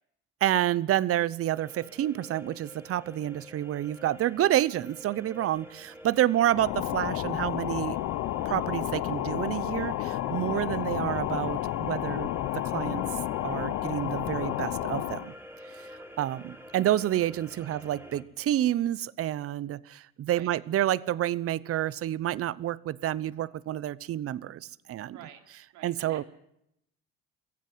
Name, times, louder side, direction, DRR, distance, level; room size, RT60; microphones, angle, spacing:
voice 1, 0.4-8.0 8.4-13.0 13.4-15.3 15.9-25.2 25.8-26.2, right 12 dB, 50° right, 20 dB, 0.9 m, -29 dB
sound 1, 1.5-18.2, equal, 5° right, 3.2 m, -48 dB
sound 2, 6.5-15.3, left 14 dB, 65° left, 1.1 m, -31 dB
voice 2, 25.1-25.4 25.7-26.2, right 11 dB, 80° right, 6 dB, 3.3 m, -49 dB
22.5 x 15.5 x 7.9 m, 0.78 s
cardioid pair, 105°, 30 cm